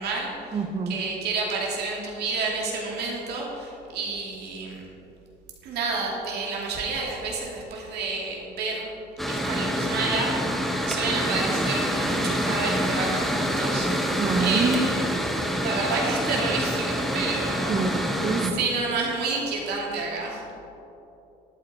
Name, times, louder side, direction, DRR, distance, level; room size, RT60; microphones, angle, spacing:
voice 1, 0.0-4.8 5.6-8.8 9.3-13.9 14.4-15.0 15.6-17.7 18.4-20.4, right 3 dB, 75° right, -2 dB, 2.5 m, -29 dB
voice 2, 0.5-1.0 14.2-14.9 17.7-18.6, right 4 dB, 35° right, 8 dB, 0.9 m, -26 dB
Mechanical fan, 9.2-18.5, equal, ahead, 1.0 m, -26 dB
11.5 x 8.5 x 4.3 m, 3.0 s
cardioid pair, 110°, 17 cm